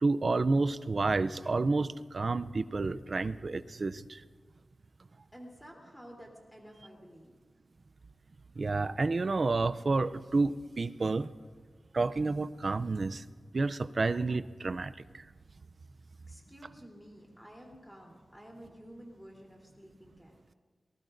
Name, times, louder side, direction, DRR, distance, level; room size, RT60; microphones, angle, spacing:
voice 1, 0.0-4.2 8.6-11.3 11.9-13.2 13.5-15.2, right 3 dB, 50° right, 14 dB, 0.5 m, -30 dB
voice 2, 5.3-7.3 16.3-20.4, equal, 5° left, -1 dB, 3.3 m, -51 dB
28.5 x 19.5 x 2.6 m, 1.5 s
wide cardioid pair, 105°, 0 cm